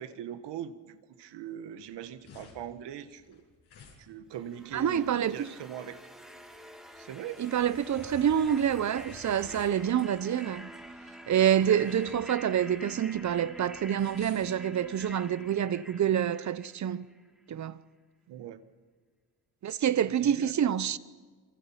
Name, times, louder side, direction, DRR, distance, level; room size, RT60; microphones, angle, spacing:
voice 1, 0.0-3.4 4.0-6.0 6.9-7.4 18.3-18.6 20.2-20.7, right 10 dB, 75° right, 1.6 m, -41 dB
sound 1, 1.8-15.3, left 5 dB, 70° left, 7.2 m, -54 dB
sound 2, 4.3-17.3, right 1 dB, ahead, 2.4 m, -48 dB
voice 2, 4.7-5.5 7.4-10.7 11.3-17.1 17.5-17.8 19.6-21.0, right 9 dB, 45° right, 0.9 m, -27 dB
26.5 x 24.5 x 5.8 m
cardioid pair, 115°, 41 cm